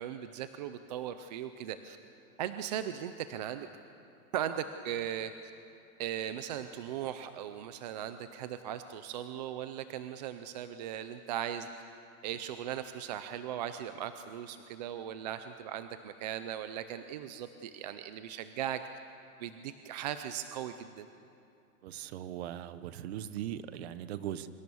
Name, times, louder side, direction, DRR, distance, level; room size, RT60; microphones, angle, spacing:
voice 1, 0.0-2.0 2.4-3.7 4.3-5.3 6.0-11.7 12.2-18.8 19.4-21.1, right 10 dB, 30° right, 10 dB, 0.5 m, -38 dB
voice 2, 21.8-24.5, right 11 dB, 45° right, 13 dB, 1.0 m, -39 dB
24.5 x 23.5 x 7.0 m, 2.7 s
supercardioid pair, 165°, 44 cm